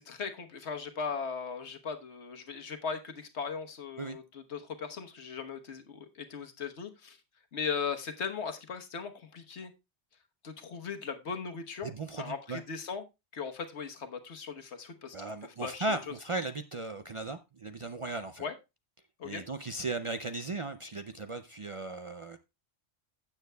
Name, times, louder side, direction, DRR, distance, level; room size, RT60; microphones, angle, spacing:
voice 1, 0.0-7.2 7.5-9.7 10.4-13.0 13.3-15.2 15.4-16.0 18.4-18.6 19.2-19.4, left 6 dB, 85° left, 1.4 m, -38 dB
voice 2, 11.8-12.6 15.1-18.4 19.2-22.4, right 2 dB, 45° right, 0.4 m, -37 dB
15.5 x 7.2 x 2.2 m
omnidirectional pair, 1.1 m